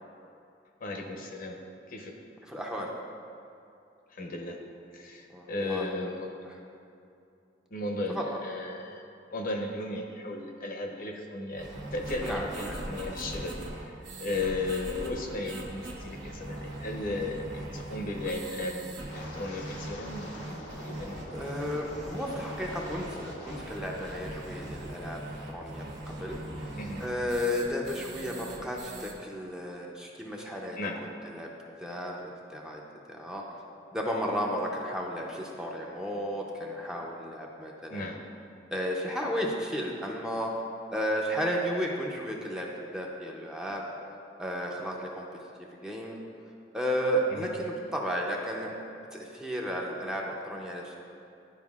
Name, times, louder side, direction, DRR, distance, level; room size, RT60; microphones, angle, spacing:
voice 1, 0.8-1.6 1.9-2.2 4.1-4.6 4.9-6.3 7.7-9.0 9.3-13.9 14.2-18.9 19.1-21.2 26.8-27.1 30.8-31.0 37.9-38.2 47.4-47.5, left 2 dB, 50° left, 2 dB, 0.7 m, -35 dB
voice 2, 2.4-2.9 5.3-5.9 6.4-6.6 8.1-8.2 12.2-12.7 21.3-26.7 27.0-31.5 31.8-32.1 32.5-32.8 33.1-33.4 33.9-38.2 38.7-40.5 40.9-43.8 44.4-45.3 45.7-46.2 46.7-48.7 49.1-51.0, equal, 5° right, -2 dB, 0.6 m, -33 dB
sound 1, 11.6-29.1, right 1 dB, 70° right, 1.1 m, -41 dB
Wind, 19.0-23.9 24.2-24.6 25.0-25.3, left 1 dB, 90° left, 0.8 m, -46 dB
11.0 x 4.6 x 2.4 m, 2.6 s
head